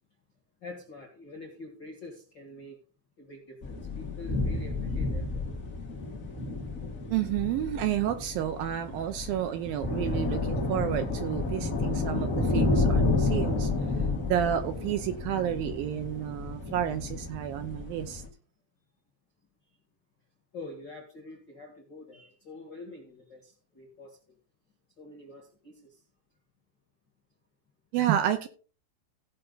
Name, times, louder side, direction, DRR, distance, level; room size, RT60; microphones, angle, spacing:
voice 1, 0.6-2.8 3.2-5.4 20.5-24.4 25.0-26.0, left 2 dB, 50° left, 1.4 m, -46 dB
sound 1, 3.6-18.3, left 3 dB, 65° left, 0.8 m, -31 dB
voice 2, 7.1-13.7 14.2-18.2 27.9-28.5, right 11 dB, 75° right, 2.3 m, -30 dB
16.0 x 5.6 x 4.0 m
omnidirectional pair, 4.7 m